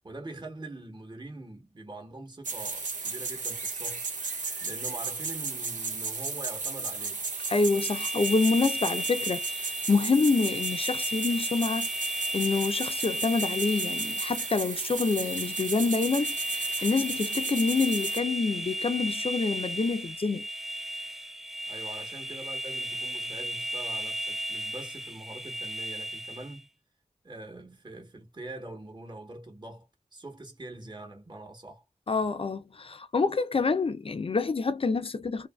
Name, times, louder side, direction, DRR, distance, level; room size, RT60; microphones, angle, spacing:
voice 1, 0.0-4.1 4.6-7.2 21.7-26.7 27.2-29.9 30.1-31.8, right 2 dB, 35° right, 1.1 m, -43 dB
sound 1, 2.4-18.2, right 4 dB, 85° right, 0.7 m, -34 dB
sound 2, 7.4-26.6, right 1 dB, ahead, 0.5 m, -35 dB
voice 2, 7.5-20.5 32.1-35.5, left 4 dB, 45° left, 0.5 m, -27 dB
2.7 x 2.5 x 2.2 m
wide cardioid pair, 50°, 13 cm